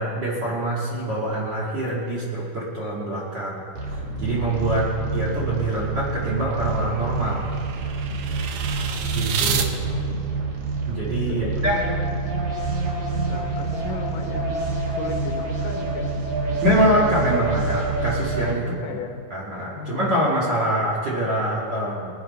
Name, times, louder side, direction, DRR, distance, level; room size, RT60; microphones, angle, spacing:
voice 1, 0.0-3.6 3.9-7.5 9.1-9.8 10.9-11.8 16.6-18.8 19.3-22.1, right 1 dB, 40° right, -5 dB, 1.7 m, -25 dB
sound 1, 3.7-18.5, right 3 dB, 55° right, 2.9 m, -27 dB
sound 2, 6.1-9.7, right 6 dB, 85° right, 1.5 m, -30 dB
voice 2, 9.8-10.5 11.2-12.7 13.3-16.1 18.6-19.3 19.7-20.2, left 4 dB, 70° left, 3 dB, 2.5 m, -35 dB
22.0 x 8.0 x 5.2 m, 2.4 s
omnidirectional pair, 4.4 m